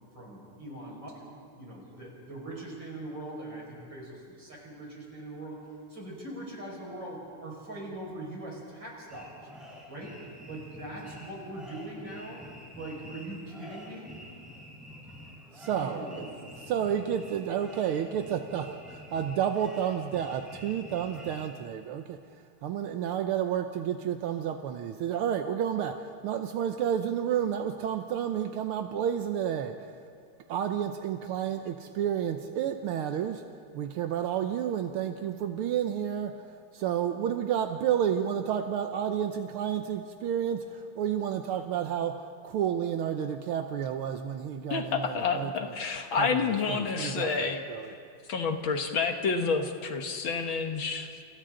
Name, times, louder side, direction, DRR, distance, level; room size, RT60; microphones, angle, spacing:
voice 1, 0.1-1.3 1.5-5.6 5.9-9.3 9.9-10.1 10.5-12.4 12.8-14.2 15.7-16.7, right 1 dB, 55° right, -3 dB, 6.3 m, -41 dB
sound 1, 9.1-21.4, equal, ahead, 6.9 m, -48 dB
voice 2, 15.5-16.2 16.7-22.2 22.6-29.9 30.5-33.4 33.7-45.7 46.2-47.9, right 9 dB, 80° right, 6 dB, 1.7 m, -31 dB
voice 3, 44.7-47.6 48.3-51.2, left 5 dB, 65° left, 5 dB, 2.1 m, -29 dB
29.0 x 29.0 x 3.9 m, 2.3 s
omnidirectional pair, 2.4 m